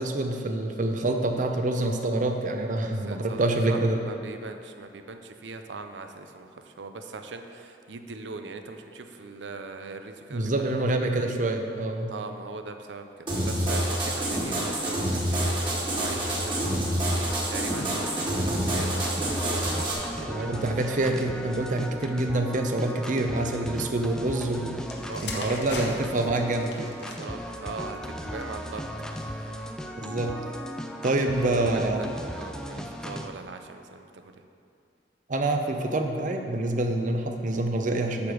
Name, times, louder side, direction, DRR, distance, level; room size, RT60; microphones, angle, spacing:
voice 1, 0.0-4.0 10.3-12.1 20.3-24.8 25.2-26.9 30.0-30.4 31.0-32.1 35.3-38.3, right 2 dB, 45° right, 5 dB, 0.7 m, -26 dB
voice 2, 2.8-11.1 12.1-21.2 25.0-26.0 26.3-26.5 27.2-29.5 30.7-30.8 31.5-34.3, right 3 dB, 90° right, 7 dB, 0.6 m, -40 dB
sound 1, 13.3-19.9, right 1 dB, 30° right, 1.8 m, -27 dB
sound 2, 17.3-33.3, equal, 5° left, 0.4 m, -37 dB
sound 3, 24.8-28.7 29.4-29.7, left 2 dB, 65° left, 1.0 m, -40 dB
8.3 x 5.0 x 6.3 m, 2.5 s
head